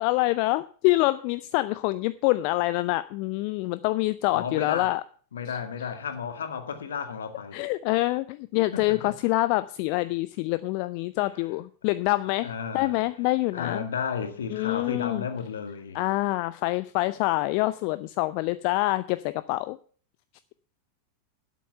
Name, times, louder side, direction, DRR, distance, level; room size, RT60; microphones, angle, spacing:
voice 1, 0.0-5.0 7.5-13.9 14.5-15.2 15.9-19.8, left 19 dB, 45° left, 0.5 m, -26 dB
voice 2, 4.3-4.9 5.3-7.6 8.7-9.2 11.2-11.3 12.4-13.0 13.5-16.0, left 6 dB, 65° left, 1.8 m, -33 dB
12.0 x 8.4 x 5.7 m
figure-of-eight pair, 90°, 0 cm